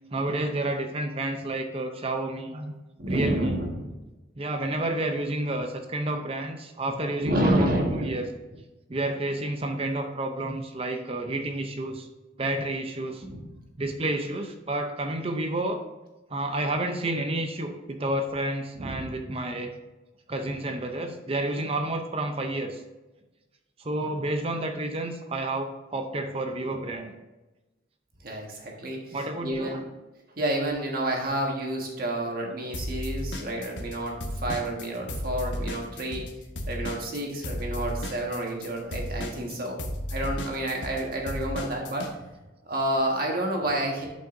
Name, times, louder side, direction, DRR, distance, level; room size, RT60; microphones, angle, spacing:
voice 1, 0.1-2.7 3.1-3.6 4.4-8.6 8.9-12.1 12.4-13.2 13.8-15.8 16.3-19.7 20.3-22.8 23.8-27.1 29.1-29.8 36.0-36.2, right 2 dB, 30° right, 5 dB, 0.6 m, -30 dB
voice 2, 3.0-3.9 7.2-8.2 13.2-13.4 18.7-19.1 28.2-29.8 30.4-36.3 36.7-39.8 40.1-42.1 42.6-44.1, right 1 dB, 50° right, 0 dB, 1.6 m, -29 dB
sound 1, 32.7-34.0 34.2-42.1, left 1 dB, 75° left, 1.1 m, -33 dB
11.5 x 5.3 x 2.6 m, 1.1 s
head